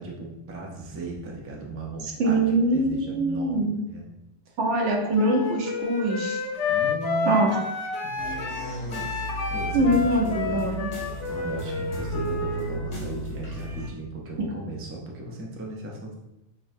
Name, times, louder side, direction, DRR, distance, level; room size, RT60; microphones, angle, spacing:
voice 1, 0.0-3.6 3.9-4.1 6.7-7.5 8.0-9.2 9.5-10.5 11.3-16.1, right 2 dB, 20° right, -2 dB, 0.3 m, -36 dB
voice 2, 2.0-3.8 4.6-6.4 7.2-7.6 9.7-10.8, right 1 dB, 80° right, 0 dB, 1.1 m, -23 dB
Wind instrument woodwind instrument, 5.1-12.7, left 4 dB, 90° left, 1.0 m, -29 dB
sound 1, 8.2-13.9, equal, 70° left, 1.6 m, -35 dB
5.8 x 2.2 x 2.6 m, 0.92 s
omnidirectional pair, 1.2 m